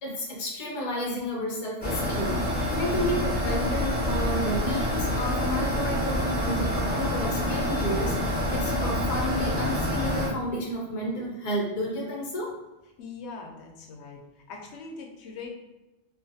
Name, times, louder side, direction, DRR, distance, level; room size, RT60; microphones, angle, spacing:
voice 1, 0.0-12.5, equal, 45° left, -2 dB, 0.7 m, -31 dB
sound 1, 1.8-10.3, left 1 dB, 10° left, 1.2 m, -27 dB
voice 2, 13.0-14.2 14.5-15.5, left 4 dB, 75° left, 1 dB, 0.9 m, -41 dB
2.5 x 2.4 x 2.6 m, 1.0 s
omnidirectional pair, 1.2 m